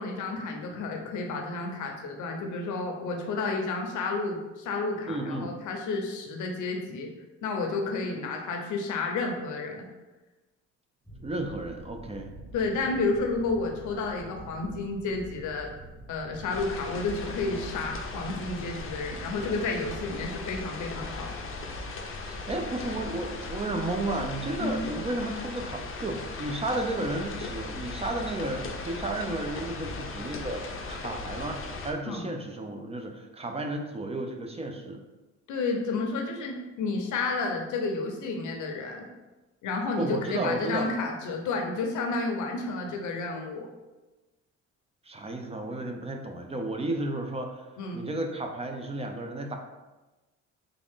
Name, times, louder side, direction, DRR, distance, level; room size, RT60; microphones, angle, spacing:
voice 1, 0.0-7.1 7.4-9.9 12.5-15.7 16.1-21.4 24.6-24.8 32.0-32.2 35.5-39.1 39.6-43.7 47.8-48.1, left 3 dB, 75° left, 2 dB, 0.8 m, -31 dB
voice 2, 5.1-5.5 11.2-12.3 22.3-35.0 40.0-40.9 45.1-47.7 47.9-49.6, right 2 dB, 20° right, 3 dB, 0.5 m, -33 dB
sound 1, 11.0-19.9, right 1 dB, ahead, 1.0 m, -46 dB
sound 2, 16.5-31.9, left 3 dB, 45° left, 0.6 m, -38 dB
3.7 x 2.4 x 3.6 m, 1.1 s
cardioid pair, 90°, 30 cm